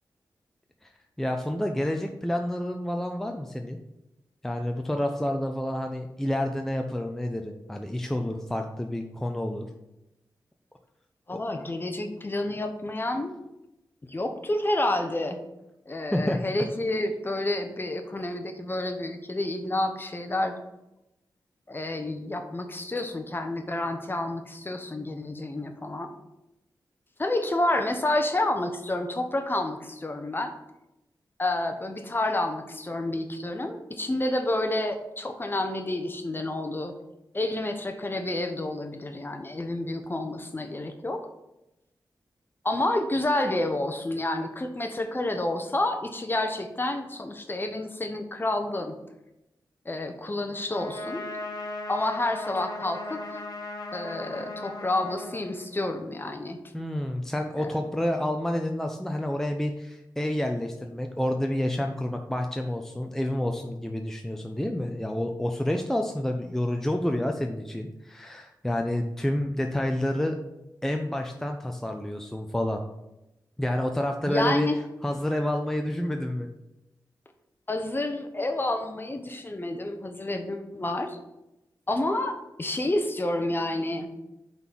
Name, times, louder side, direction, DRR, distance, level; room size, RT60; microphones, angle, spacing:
voice 1, 1.2-3.8 4.4-9.7 11.3-11.4 16.1-16.4 56.7-70.4 70.8-72.8 73.6-74.7 75.0-76.5, left 1 dB, 5° left, 3 dB, 0.6 m, -29 dB
voice 2, 11.3-13.4 14.1-15.4 15.9-20.6 21.7-26.1 27.2-30.5 31.4-36.9 37.3-41.2 42.6-49.0 49.8-51.2 51.9-53.2 53.9-56.6 57.6-57.7 74.2-74.8 77.7-81.2 81.9-84.1, left 1 dB, 30° left, 6 dB, 0.9 m, -29 dB
Trumpet, 50.7-56.0, left 2 dB, 60° left, 1.3 m, -38 dB
5.5 x 4.0 x 6.0 m, 0.92 s
cardioid pair, 60°, 8 cm